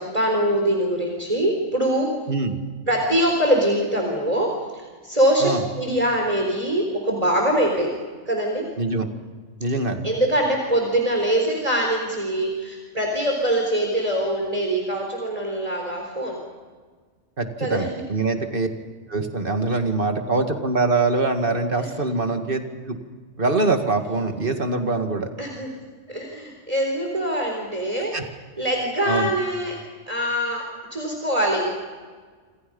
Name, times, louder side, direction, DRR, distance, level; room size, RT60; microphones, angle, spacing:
voice 1, 0.0-2.1 2.9-5.5 5.8-8.0 8.3-8.7 10.0-16.4 17.6-18.0 21.8-21.9 25.4-25.7 26.1-28.2 28.6-29.8 30.1-31.7, right 1 dB, 30° right, 1 dB, 4.1 m, -23 dB
voice 2, 9.6-10.1 17.4-18.7 19.1-23.0 23.4-25.3 28.1-28.2 29.1-29.3, right 3 dB, 45° right, 5 dB, 2.3 m, -23 dB
27.5 x 27.0 x 5.5 m, 1.5 s
omnidirectional pair, 1.2 m